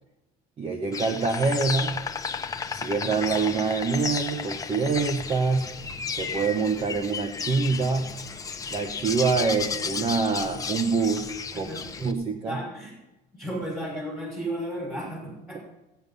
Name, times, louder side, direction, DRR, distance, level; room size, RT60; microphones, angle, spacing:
voice 1, 0.6-2.0 2.7-5.7 6.2-8.1 8.7-11.7 12.0-12.6, right 4 dB, 30° right, 5 dB, 1.4 m, -25 dB
Insect, 0.9-12.1, left 5 dB, 20° left, 1.0 m, -33 dB
voice 2, 11.5-11.9 12.5-12.9 13.3-15.6, right 1 dB, 15° right, -2 dB, 5.4 m, -34 dB
18.5 x 9.4 x 5.5 m, 0.98 s
cardioid pair, 130°, 18 cm